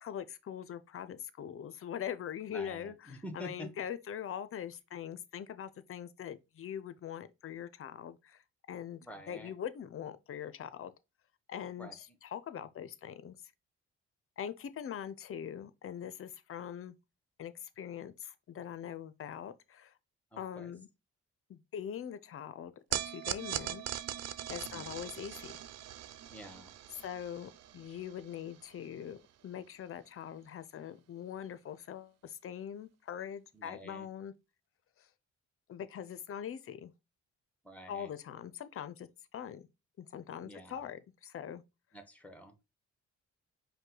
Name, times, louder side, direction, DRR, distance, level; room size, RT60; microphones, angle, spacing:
voice 1, 0.0-8.4 8.7-9.0 9.3-10.9 11.5-13.4 14.4-16.9 17.4-19.9 20.4-20.9 21.5-23.8 24.5-25.5 26.9-29.2 29.4-34.3 35.0-35.1 35.7-36.9 37.9-39.7 40.0-41.6, left 9 dB, 50° left, 0.5 m, -42 dB
voice 2, 2.5-3.7 9.0-9.5 11.8-12.0 20.3-20.7 24.6-24.8 26.3-26.7 33.5-34.1 37.6-38.1 40.4-40.9 41.9-42.5, equal, 5° left, 1.0 m, -48 dB
sound 1, 22.9-29.3, right 11 dB, 60° right, 0.4 m, -41 dB
5.2 x 2.2 x 3.8 m
cardioid pair, 90°, 29 cm